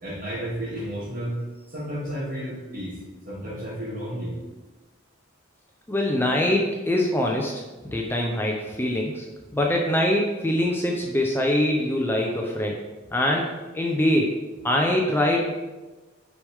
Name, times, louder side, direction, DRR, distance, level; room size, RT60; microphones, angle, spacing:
voice 1, 0.0-1.4 1.7-3.0 3.3-4.3, equal, 45° right, -5 dB, 2.5 m, -32 dB
voice 2, 5.9-9.3 9.5-12.8 13.1-13.5 13.7-14.3 14.6-15.4, left 1 dB, 10° left, 0 dB, 0.7 m, -23 dB
8.5 x 4.9 x 3.6 m, 1.2 s
head